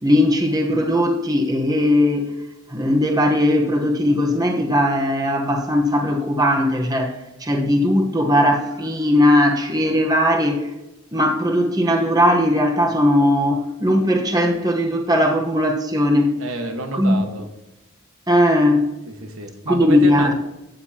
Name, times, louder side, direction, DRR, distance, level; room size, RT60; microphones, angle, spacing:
voice 1, 0.0-2.4 2.7-10.7 11.1-16.4 16.9-17.2 18.3-18.9 19.7-20.3, left 1 dB, 20° right, 2 dB, 1.1 m, -18 dB
voice 2, 16.4-17.5 19.0-20.3, right 2 dB, 80° right, 5 dB, 1.5 m, -29 dB
13.0 x 9.1 x 2.9 m, 0.94 s
head